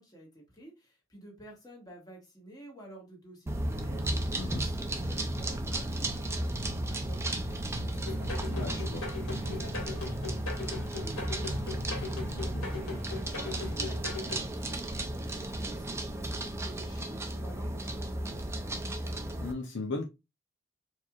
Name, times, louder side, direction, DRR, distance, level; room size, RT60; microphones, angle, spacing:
voice 1, 0.0-8.9 9.2-18.9, right 1 dB, 20° left, 1.6 m, -52 dB
sound 1, 3.5-19.5, right 1 dB, 15° right, 0.5 m, -34 dB
voice 2, 4.3-4.6 8.5-9.0 12.3-12.7 19.4-20.1, left 3 dB, 60° left, 0.7 m, -37 dB
sound 2, 8.0-14.4, left 2 dB, 75° left, 1.8 m, -39 dB
4.5 x 3.0 x 2.4 m
head